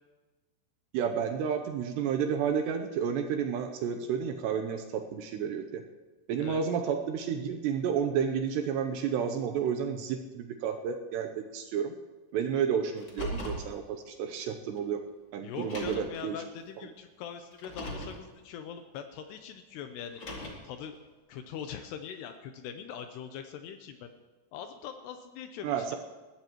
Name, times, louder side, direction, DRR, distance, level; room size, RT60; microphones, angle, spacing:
voice 1, 0.9-5.8 6.3-11.9 12.3-15.0 15.3-16.4 25.6-26.0, right 7 dB, 85° right, 4 dB, 2.5 m, -31 dB
Car, 12.9-13.7 14.8-14.9 15.6-16.2 17.5-18.2 20.0-20.7, equal, 40° left, 1.9 m, -38 dB
voice 2, 15.4-20.2 20.6-21.0 21.3-24.1 24.5-26.0, left 8 dB, 85° left, 7 dB, 2.4 m, -42 dB
20.0 x 14.5 x 3.0 m, 1.2 s
omnidirectional pair, 5.6 m